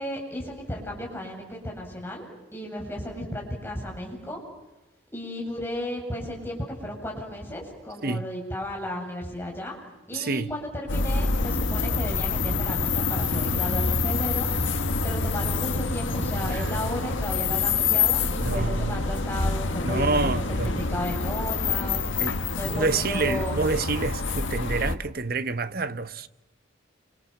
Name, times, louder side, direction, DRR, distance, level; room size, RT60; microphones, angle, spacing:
voice 1, 0.0-2.2 2.5-4.4 5.1-9.8 10.1-14.5 15.0-22.1 22.5-23.6, left 1 dB, 10° left, 7.9 m, -34 dB
voice 2, 10.1-10.5 16.5-16.6 18.4-19.0 19.8-20.9 22.2-22.4 22.6-26.3, right 3 dB, 50° right, 1.1 m, -28 dB
sound 1, 10.9-25.0, left 4 dB, 90° left, 1.5 m, -26 dB
29.0 x 27.0 x 7.3 m
head